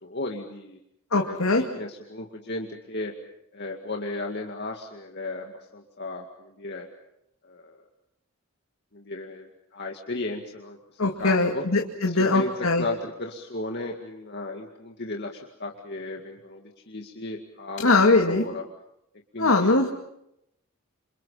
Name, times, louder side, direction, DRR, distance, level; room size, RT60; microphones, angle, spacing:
voice 1, 0.0-0.8 1.2-3.1 3.5-6.9 7.4-7.8 8.9-11.6 12.0-17.9 18.3-18.6 19.3-19.9, left 2 dB, 50° left, 2 dB, 2.2 m, -35 dB
voice 2, 1.1-1.6 11.0-12.8 17.8-18.5 19.4-19.9, left 3 dB, 75° left, 1 dB, 2.4 m, -21 dB
29.0 x 27.5 x 5.7 m, 0.78 s
head